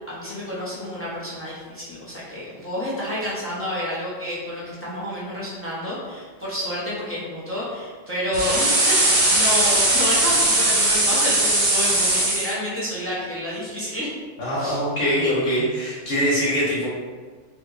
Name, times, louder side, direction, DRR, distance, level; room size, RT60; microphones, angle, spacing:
voice 1, 0.1-14.1 14.6-14.8, left 1 dB, 15° left, -7 dB, 0.5 m, -29 dB
sound 1, 8.3-12.5, right 1 dB, 45° right, 0.7 m, -19 dB
voice 2, 14.4-16.9, equal, 85° left, -8 dB, 1.5 m, -23 dB
3.6 x 2.6 x 2.5 m, 1.5 s
omnidirectional pair, 1.3 m